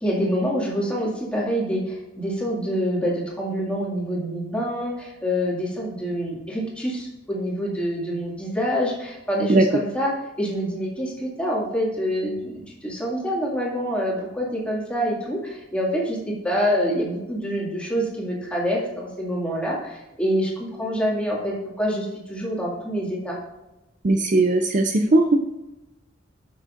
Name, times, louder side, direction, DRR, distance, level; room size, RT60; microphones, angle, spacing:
voice 1, 0.0-10.1 10.4-23.4, equal, 5° left, -4 dB, 2.1 m, -26 dB
voice 2, 24.0-25.4, right 2 dB, 40° right, 5 dB, 0.5 m, -18 dB
12.0 x 6.3 x 2.5 m, 0.98 s
head